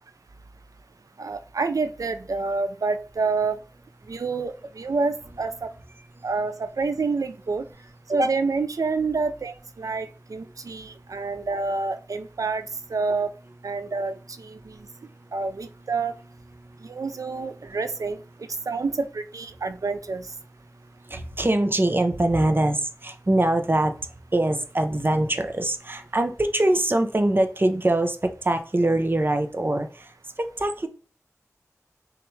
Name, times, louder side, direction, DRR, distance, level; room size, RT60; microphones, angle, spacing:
voice 1, 1.2-3.6 4.1-5.7 6.2-7.7 8.1-12.6 12.9-13.3 13.6-14.6 15.3-16.1 16.9-18.2 18.7-20.3, right 4 dB, 90° right, 10 dB, 0.4 m, -27 dB
voice 2, 21.1-23.9 24.3-30.1 30.4-30.9, right 1 dB, 40° right, 7 dB, 0.6 m, -23 dB
6.1 x 2.4 x 3.1 m, 0.37 s
wide cardioid pair, 60°, 6 cm